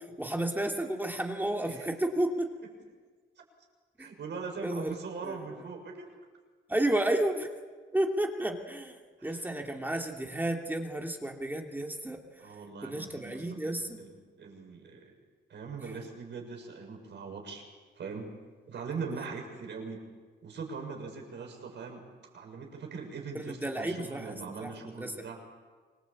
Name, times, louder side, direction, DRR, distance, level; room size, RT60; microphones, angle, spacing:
voice 1, 0.2-2.5 4.6-4.9 5.2-5.4 6.7-7.5 7.9-8.9 9.2-12.2 12.8-14.0 23.3-24.3 24.6-25.1, right 1 dB, 10° right, 2 dB, 2.9 m, -31 dB
voice 2, 4.0-6.2 9.2-9.5 12.4-14.1 14.4-15.1 15.5-17.7 18.0-18.3 18.7-20.0 20.4-22.0 22.3-25.4, right 5 dB, 60° right, 3 dB, 7.0 m, -41 dB
26.5 x 21.5 x 8.7 m, 1.5 s
cardioid pair, 90°, 20 cm